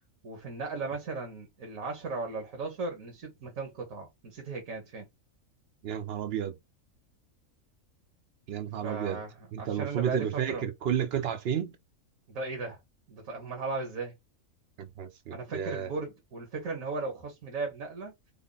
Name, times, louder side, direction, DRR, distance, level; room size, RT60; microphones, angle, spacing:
voice 1, 0.2-5.1 8.8-10.6 12.3-12.8 13.1-14.1 15.3-18.1, right 3 dB, 75° right, 1.5 m, -36 dB
voice 2, 5.8-6.6 8.5-9.2 9.5-11.8 14.8-15.9, right 9 dB, 60° right, 0.7 m, -32 dB
3.5 x 2.2 x 3.8 m
omnidirectional pair, 1.4 m